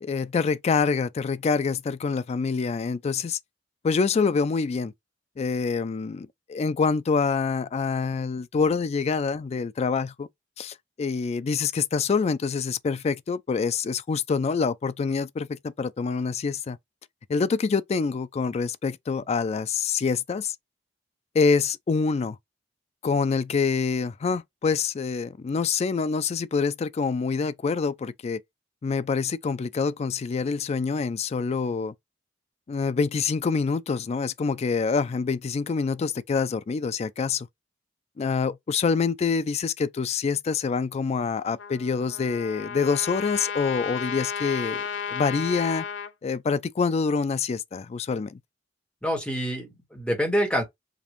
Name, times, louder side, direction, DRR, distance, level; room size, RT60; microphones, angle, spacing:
voice 1, 0.0-3.4 3.8-4.9 5.4-10.3 10.6-16.8 17.3-20.6 21.3-22.4 23.0-28.4 28.8-31.9 32.7-37.5 38.2-45.8 46.2-48.4, left 5 dB, 35° left, 0.3 m, -26 dB
Trumpet, 41.6-46.1, left 7 dB, 85° left, 0.6 m, -33 dB
voice 2, 49.0-50.6, equal, 5° left, 1.5 m, -26 dB
5.1 x 2.5 x 3.0 m
head